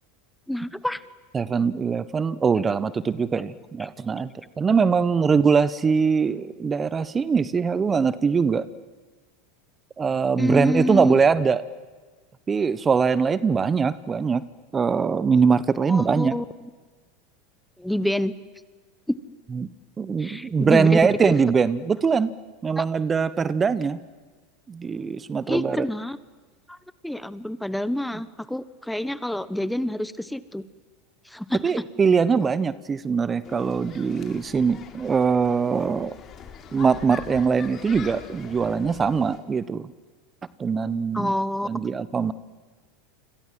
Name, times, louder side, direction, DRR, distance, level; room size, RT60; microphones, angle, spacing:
voice 1, 0.5-1.0 10.4-11.2 15.9-16.4 17.8-18.3 19.1-19.2 20.2-21.0 21.3-21.4 22.8-22.9 25.5-26.2 26.7-26.8 27.0-30.6 31.2-31.6 41.1-41.7, left 1 dB, 5° left, 15 dB, 1.2 m, -27 dB
voice 2, 1.3-4.3 4.6-8.6 10.0-11.6 12.5-14.4 14.7-16.3 19.5-19.7 20.0-22.3 22.6-24.0 24.7-25.9 31.6-36.2 36.7-39.9 40.6-41.3 41.6-42.3, right 5 dB, 25° right, 16 dB, 1.2 m, -22 dB
sound 1, 33.4-39.4, left 7 dB, 40° left, 4.2 m, -43 dB
29.0 x 26.5 x 7.8 m, 1.3 s
hypercardioid pair, 90°, 0 cm